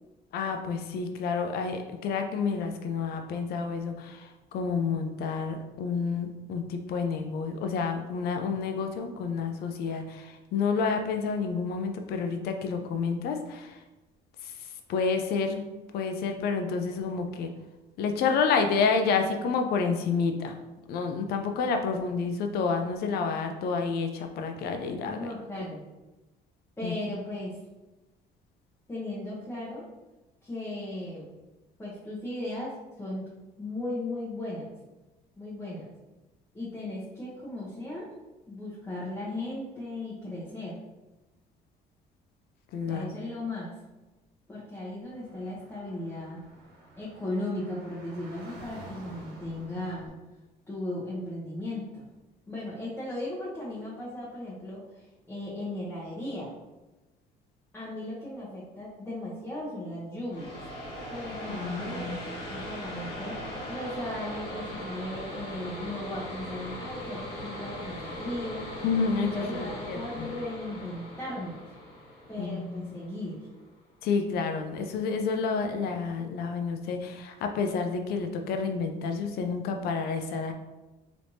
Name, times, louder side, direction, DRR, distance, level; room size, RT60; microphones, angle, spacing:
voice 1, 0.3-13.8 14.4-14.5 14.9-15.6 15.9-17.5 18.0-20.6 20.9-25.6 26.8-26.9 42.7-43.1 61.5-62.2 68.8-70.3 72.4-73.0 74.0-80.5, left 5 dB, 70° left, 5 dB, 0.5 m, -29 dB
voice 2, 25.0-25.9 26.8-27.6 28.9-29.9 30.4-31.3 31.8-33.3 33.6-34.7 35.4-35.9 36.5-38.1 38.5-40.8 42.9-43.7 44.5-46.4 47.0-50.1 50.7-52.1 52.5-56.6 57.7-60.5 61.1-62.2 62.5-63.4 63.7-68.8 69.1-71.6 72.3-73.4, left 1 dB, 15° left, -8 dB, 0.9 m, -36 dB
Car / Traffic noise roadway noise, 45.0-50.1, right 1 dB, 80° right, 1.2 m, -50 dB
sound 1, 60.3-73.7, equal, 85° left, 1.0 m, -39 dB
3.3 x 3.0 x 2.7 m, 1.1 s
cardioid pair, 110°, 17 cm